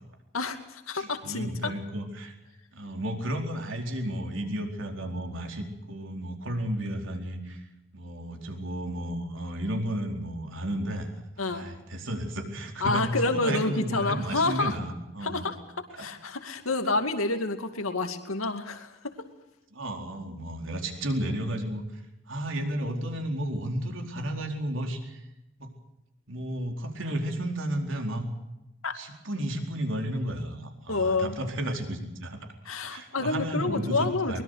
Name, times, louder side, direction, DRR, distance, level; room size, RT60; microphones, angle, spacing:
voice 1, 0.3-1.7 11.4-11.7 12.8-14.7 15.2-15.6 16.0-19.1 28.8-29.0 30.9-31.4 32.6-34.4, left 3 dB, 90° left, 6 dB, 2.4 m, -28 dB
voice 2, 0.9-2.3 2.7-7.6 7.9-15.4 16.0-16.1 19.7-21.8 22.3-25.2 25.6-25.7 26.3-28.3 28.9-32.4 32.9-34.4, right 1 dB, 65° right, 3 dB, 4.4 m, -33 dB
23.0 x 21.5 x 6.6 m, 0.92 s
head